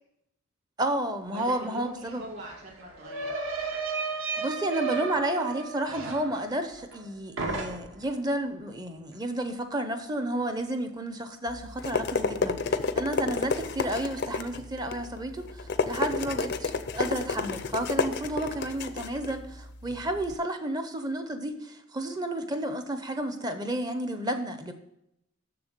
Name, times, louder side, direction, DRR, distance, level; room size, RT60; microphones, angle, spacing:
voice 1, 0.8-2.2 4.4-24.7, right 1 dB, 20° right, 8 dB, 0.6 m, -31 dB
voice 2, 1.3-3.6 13.3-13.5, equal, 45° right, -4 dB, 2.1 m, -43 dB
sound 1, 1.5-1.6 1.8-7.1 7.4-8.1, right 4 dB, 65° right, 1.3 m, -34 dB
sound 2, 11.5-20.3, left 4 dB, 50° left, 0.5 m, -31 dB
6.9 x 6.8 x 6.6 m, 0.83 s
head